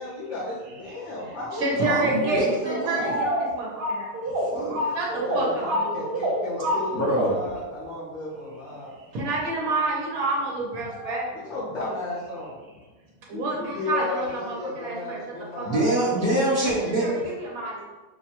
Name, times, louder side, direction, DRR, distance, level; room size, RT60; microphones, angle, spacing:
voice 1, 0.0-1.6 1.9-3.0 4.9-5.0 5.3-8.9 11.5-12.6 13.3-15.8, left 2 dB, 55° left, -9 dB, 1.1 m, -34 dB
voice 2, 1.2-4.2 4.8-6.0 8.9-11.4 13.3-15.2 15.6-16.0 16.6-17.8, right 2 dB, 75° right, -4 dB, 1.3 m, -29 dB
voice 3, 1.8-3.1 4.3-4.8 6.9-7.3 15.6-17.1, right 1 dB, 15° left, -7 dB, 0.6 m, -25 dB
sound 1, 2.9-7.5 10.9-11.2, equal, 55° right, 0.8 m, -28 dB
5.4 x 2.2 x 2.9 m, 1.2 s
omnidirectional pair, 1.5 m